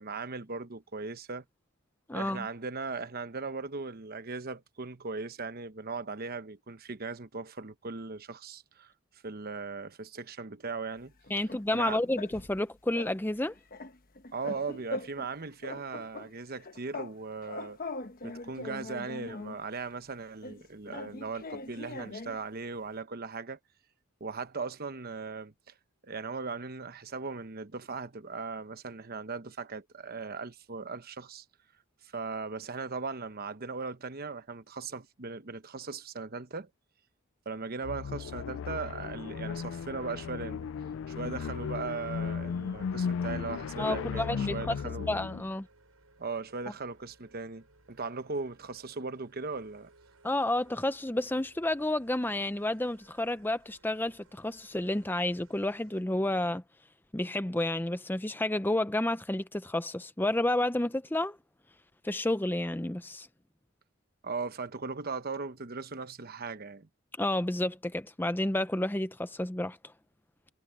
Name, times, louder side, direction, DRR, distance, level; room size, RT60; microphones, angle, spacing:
voice 1, 0.0-1.4 2.1-8.9 9.2-11.1 11.7-12.0 14.3-17.8 18.2-23.6 24.2-25.7 26.0-31.4 32.1-36.7 37.5-40.7 41.1-45.2 46.2-49.9 64.2-66.9, right 4 dB, 45° right, 1.0 m, -38 dB
voice 2, 2.1-2.5 11.3-13.5 43.8-44.7 45.1-45.7 50.2-56.6 57.1-61.4 62.0-63.3 67.2-69.8, left 1 dB, 10° left, 0.6 m, -30 dB
sound 1, 11.2-12.6 12.9-13.2 13.4-15.3 15.6-17.2 17.4-19.6 20.4-22.4, left 2 dB, 40° left, 1.1 m, -41 dB
sound 2, 37.8-45.5, left 6 dB, 60° left, 0.3 m, -36 dB
sound 3, 41.4-56.0, right 2 dB, 80° right, 6.5 m, -63 dB
head